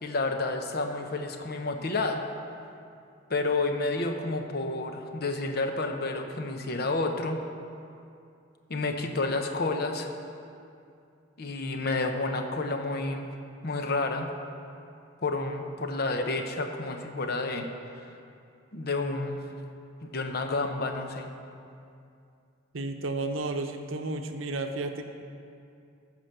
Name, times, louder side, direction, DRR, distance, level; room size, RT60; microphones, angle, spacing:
voice 1, 0.0-2.2 3.3-7.4 8.7-10.1 11.4-13.3 13.6-14.3 15.2-17.7 18.7-19.6 20.0-21.3, left 3 dB, 50° left, 5 dB, 0.8 m, -30 dB
voice 2, 22.7-25.0, right 2 dB, 75° right, 5 dB, 0.8 m, -32 dB
14.0 x 5.0 x 6.7 m, 2.5 s
head